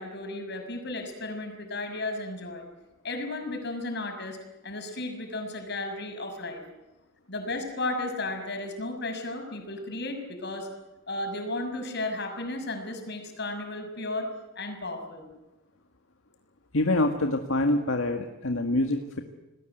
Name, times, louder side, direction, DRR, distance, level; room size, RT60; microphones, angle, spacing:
voice 1, 0.0-2.7 3.0-4.4 4.6-6.6 7.3-10.7 11.1-14.3 14.6-15.3, left 2 dB, 55° left, 5 dB, 6.2 m, -34 dB
voice 2, 16.7-19.2, left 2 dB, 75° left, 5 dB, 1.8 m, -25 dB
29.0 x 20.0 x 8.0 m, 1.0 s
head